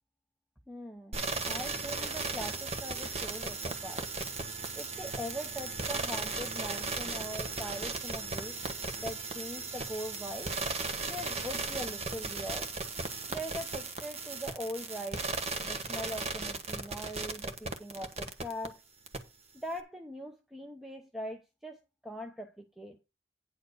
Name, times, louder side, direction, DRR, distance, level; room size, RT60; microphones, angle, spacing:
voice 1, 0.7-1.2 1.5-4.0 4.8-8.6 9.0-10.5 11.0-12.7 13.3-15.3 15.6-18.8 19.5-23.0, equal, ahead, 0.7 m, -41 dB
sound 1, 1.1-18.7 19.1-19.2, right 3 dB, 35° right, 1.2 m, -36 dB
9.7 x 4.6 x 6.4 m
head